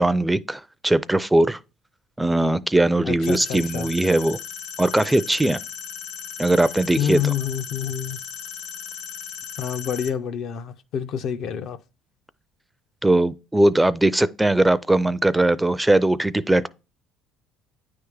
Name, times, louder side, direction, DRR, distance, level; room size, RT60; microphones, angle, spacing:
voice 1, 0.0-1.6 2.2-4.4 4.8-5.6 6.4-7.2 13.0-16.7, right 1 dB, 10° right, 0.4 m, -20 dB
voice 2, 3.0-3.9 7.0-8.2 9.6-11.8, left 8 dB, 60° left, 0.5 m, -27 dB
sound 1, 3.2-10.1, left 7 dB, 80° left, 1.3 m, -36 dB
9.2 x 3.5 x 3.2 m
supercardioid pair, 75°, 0 cm